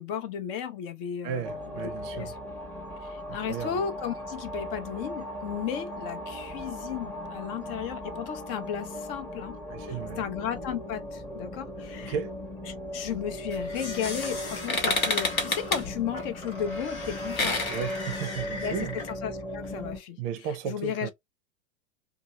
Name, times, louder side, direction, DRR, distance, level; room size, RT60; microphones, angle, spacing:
voice 1, 0.0-2.3 3.0-9.6 9.9-12.2 12.6-17.6 18.6-20.2 20.4-21.1, left 8 dB, 45° left, 0.6 m, -34 dB
voice 2, 1.2-2.3 3.3-3.8 9.7-10.2 12.0-12.3 17.6-18.9 20.2-21.1, right 8 dB, 35° right, 0.5 m, -34 dB
sound 1, 1.4-20.0, left 1 dB, 5° left, 0.7 m, -38 dB
sound 2, 13.5-19.1, left 3 dB, 85° left, 1.4 m, -31 dB
2.7 x 2.4 x 2.9 m
hypercardioid pair, 100°, 41 cm